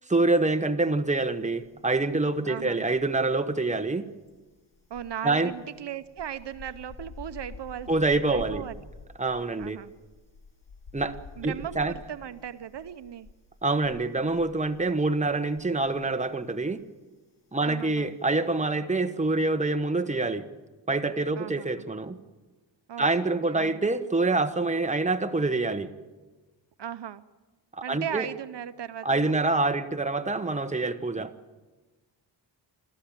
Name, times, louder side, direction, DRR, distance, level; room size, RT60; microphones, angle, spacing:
voice 1, 0.1-4.0 5.2-5.5 7.9-8.6 9.2-9.8 10.9-11.9 13.6-16.8 17.5-20.4 20.9-22.2 23.0-25.9 27.7-28.3 29.0-31.3, right 3 dB, 15° right, 8 dB, 1.3 m, -26 dB
sound 1, 1.5-2.3 2.6-16.1 16.4-16.7, left 3 dB, 90° left, 4.0 m, -48 dB
voice 2, 2.4-2.9 4.9-7.9 8.3-8.8 9.6-9.9 11.4-13.3 17.6-18.2 21.4-21.9 22.9-23.9 26.8-27.2 27.8-29.4, right 9 dB, 65° right, 12 dB, 0.8 m, -37 dB
28.0 x 13.5 x 9.0 m, 1.2 s
cardioid pair, 85°, 45 cm